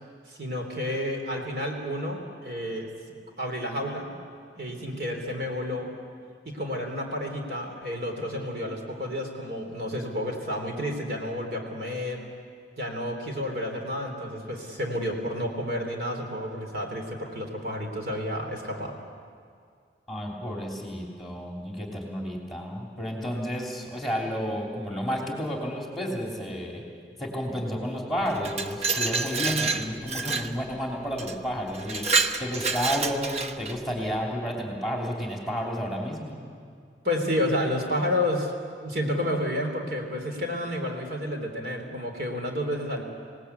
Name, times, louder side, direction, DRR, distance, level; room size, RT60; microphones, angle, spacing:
voice 1, 0.3-2.9 3.4-4.1 4.6-5.9 6.4-12.2 12.8-19.0 37.0-38.5 38.8-43.0, left 1 dB, 60° right, 2 dB, 3.4 m, -30 dB
voice 2, 20.1-26.8 27.2-36.4, equal, ahead, -1 dB, 3.2 m, -31 dB
Glass, 28.3-30.5 31.2-31.3 31.7-33.8, right 4 dB, 35° right, 1.0 m, -28 dB
27.0 x 18.5 x 8.3 m, 2.2 s
head